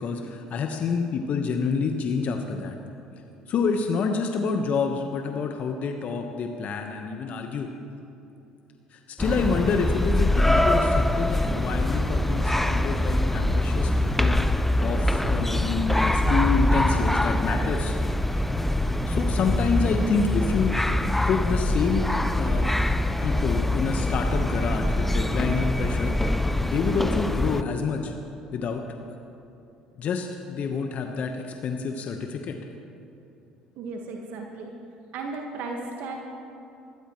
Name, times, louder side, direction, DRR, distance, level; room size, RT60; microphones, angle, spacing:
voice 1, 0.0-2.8 3.5-7.7 8.9-14.4 14.8-18.0 19.1-20.8 21.3-22.0 22.4-22.7 23.2-26.2 26.6-28.1 28.5-28.8 29.1-29.2 30.0-32.6, left 5 dB, 50° left, 4 dB, 1.1 m, -28 dB
sound 1, 9.2-27.6, left 1 dB, 5° left, 0.6 m, -24 dB
voice 2, 33.7-34.7 35.1-36.3, right 3 dB, 65° right, 1 dB, 1.6 m, -35 dB
26.0 x 13.0 x 3.1 m, 2.7 s
hypercardioid pair, 60°, 3 cm